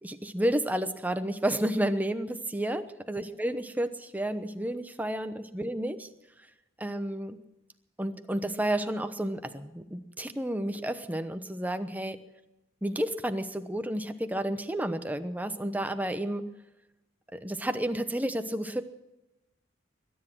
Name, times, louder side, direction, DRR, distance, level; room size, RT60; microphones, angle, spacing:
voice 1, 0.0-6.1 6.8-7.4 8.0-12.2 12.8-16.4 17.3-18.8, right 1 dB, 10° right, 9 dB, 0.9 m, -31 dB
22.0 x 10.0 x 6.2 m, 0.95 s
head